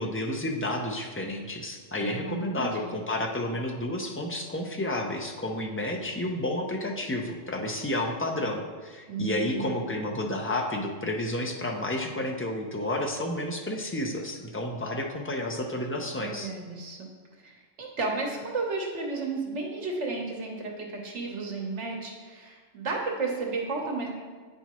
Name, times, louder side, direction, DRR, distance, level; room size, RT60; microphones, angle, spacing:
voice 1, 0.0-16.5, left 1 dB, 20° left, 1 dB, 0.3 m, -31 dB
voice 2, 2.0-3.0 9.1-9.8 16.1-17.0 17.4-24.1, right 3 dB, 80° right, 0 dB, 1.3 m, -33 dB
9.3 x 4.3 x 3.0 m, 1.5 s
omnidirectional pair, 1.2 m